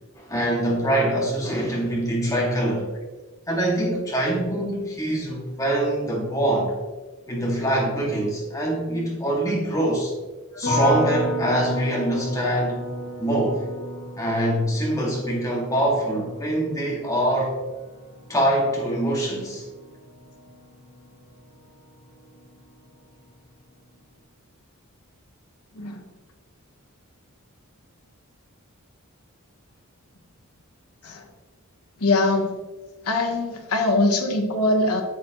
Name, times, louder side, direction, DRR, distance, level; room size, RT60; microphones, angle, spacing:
voice 1, 0.1-2.9 3.5-6.7 7.3-10.1 10.6-12.8 13.2-13.7 14.2-17.6 18.3-19.6, right 1 dB, 15° left, -3 dB, 2.0 m, -24 dB
sound 1, 10.6-21.7 22.0-22.7, equal, 55° left, 2.2 m, -33 dB
voice 2, 32.0-32.6 33.0-35.0, left 2 dB, 90° left, 3 dB, 1.2 m, -22 dB
8.3 x 7.6 x 3.0 m, 1.2 s
head